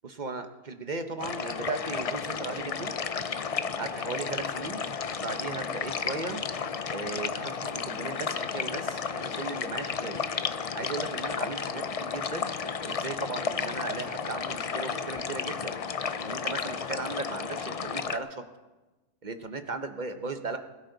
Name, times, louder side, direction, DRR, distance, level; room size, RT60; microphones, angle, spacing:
voice 1, 0.0-3.0 3.8-4.8 5.2-6.5 6.9-10.2 10.7-12.6 12.9-15.8 16.2-18.4 19.2-20.6, right 3 dB, 35° right, 7 dB, 0.9 m, -37 dB
sound 1, 1.2-18.2, left 6 dB, 65° left, 0.3 m, -33 dB
21.5 x 13.0 x 4.0 m, 1.2 s
omnidirectional pair, 1.4 m